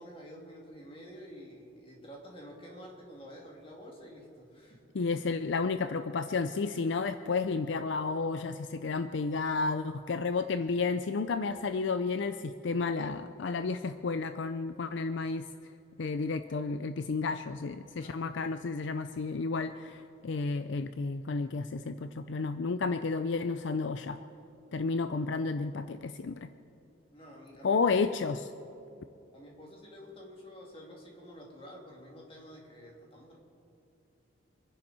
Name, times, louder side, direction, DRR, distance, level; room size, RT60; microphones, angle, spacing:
voice 1, 0.0-4.8 17.9-18.6 27.1-27.8 29.3-33.4, equal, 25° left, -2 dB, 2.6 m, -49 dB
voice 2, 4.9-15.5 16.0-24.2 24.7-26.5 27.6-28.5, left 4 dB, 65° left, 10 dB, 0.4 m, -32 dB
26.0 x 10.5 x 4.3 m, 2.8 s
head